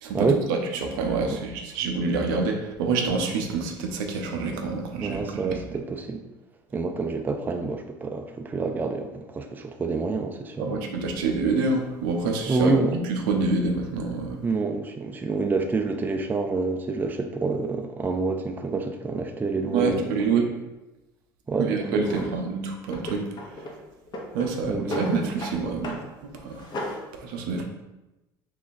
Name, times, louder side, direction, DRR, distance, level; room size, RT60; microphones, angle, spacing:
voice 1, 0.0-5.6 10.6-14.4 19.7-20.5 21.7-23.2 24.3-26.0 26.4-26.6 27.1-27.6, right 4 dB, 80° right, 0.5 m, -27 dB
voice 2, 5.0-6.2 6.7-10.9 12.5-13.0 14.4-20.1 21.5-22.3 24.7-25.1, right 3 dB, 15° right, 0.3 m, -27 dB
Drawer open or close, 22.0-22.3 22.9-23.8 24.1-25.6 25.8-26.1 26.4-27.0, left 1 dB, 40° left, 0.8 m, -34 dB
3.0 x 2.4 x 3.9 m
supercardioid pair, 85°, 11 cm